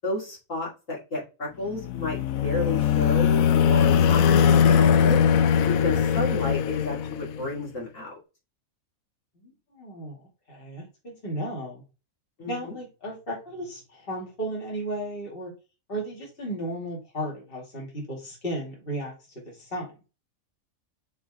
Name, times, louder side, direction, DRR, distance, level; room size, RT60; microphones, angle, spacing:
voice 1, 0.0-5.2 5.7-8.1 12.4-12.7, left 2 dB, 65° left, -4 dB, 2.9 m, -31 dB
sound 1, 1.7-7.5, left 8 dB, 80° left, 1.1 m, -21 dB
voice 2, 9.4-10.2 10.5-11.8 12.5-15.5 15.9-19.9, right 1 dB, 40° left, -2 dB, 2.6 m, -35 dB
6.5 x 4.6 x 3.7 m, 0.30 s
omnidirectional pair, 1.4 m